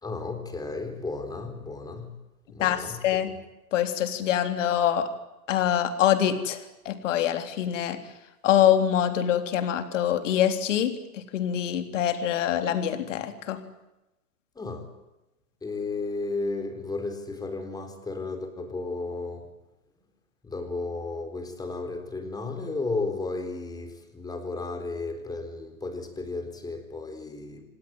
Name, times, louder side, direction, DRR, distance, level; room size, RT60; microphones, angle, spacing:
voice 1, 0.0-2.1 2.5-3.0 14.6-14.9 15.6-19.5 20.4-27.6, left 3 dB, 10° left, 7 dB, 4.3 m, -33 dB
voice 2, 2.6-3.3 3.7-5.1 5.5-6.6 6.9-8.0 8.4-10.9 11.3-13.6, left 10 dB, 55° left, 8 dB, 3.7 m, -24 dB
27.5 x 18.5 x 9.2 m, 0.96 s
hypercardioid pair, 135°, 44 cm